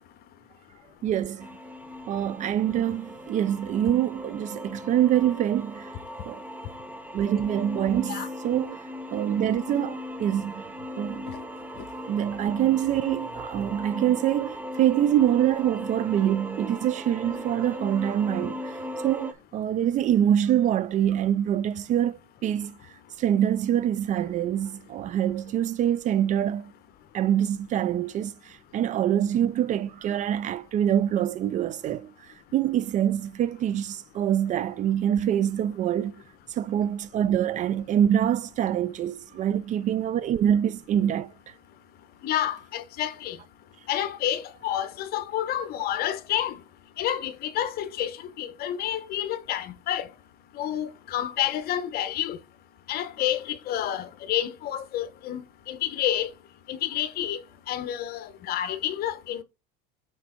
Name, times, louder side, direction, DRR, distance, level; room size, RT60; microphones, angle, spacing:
voice 1, 1.0-1.5 2.1-5.9 6.2-6.4 7.1-8.8 9.1-10.6 11.0-11.3 12.1-18.8 19.0-22.8 23.2-26.7 27.1-36.2 36.5-41.3, right 10 dB, 40° right, 0.4 m, -25 dB
sound 1, 1.4-19.3, left 1 dB, 10° right, 0.7 m, -38 dB
voice 2, 42.2-43.4 43.9-46.6 47.0-50.1 50.6-52.4 52.9-56.3 56.7-57.4 57.7-59.4, left 11 dB, 50° left, 1.0 m, -29 dB
6.0 x 4.5 x 4.3 m
supercardioid pair, 120°, 20 cm